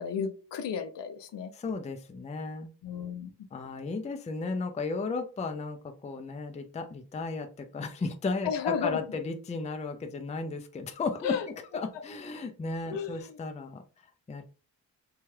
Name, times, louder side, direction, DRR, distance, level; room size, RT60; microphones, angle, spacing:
voice 1, 0.0-1.5 2.8-3.3 8.4-9.0 11.2-11.5 12.9-13.4, left 7 dB, 85° left, 7 dB, 0.5 m, -33 dB
voice 2, 1.5-2.7 3.5-13.8 14.3-14.4, left 3 dB, 20° left, 7 dB, 0.4 m, -35 dB
2.8 x 2.3 x 3.1 m, 0.36 s
cardioid pair, 75°, 41 cm